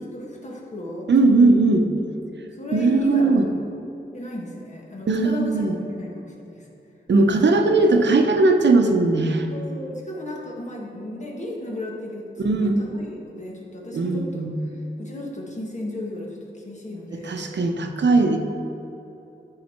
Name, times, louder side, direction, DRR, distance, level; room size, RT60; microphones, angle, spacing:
voice 1, 0.0-1.1 2.5-3.5 4.1-6.7 9.5-17.9, left 1 dB, 40° left, -2 dB, 1.6 m, -35 dB
voice 2, 1.1-1.9 2.7-3.5 5.1-5.7 7.1-9.5 12.4-12.9 13.9-14.6 17.2-18.4, right 3 dB, 85° right, 4 dB, 0.8 m, -18 dB
13.0 x 4.9 x 4.4 m, 3.0 s
wide cardioid pair, 120°, 18 cm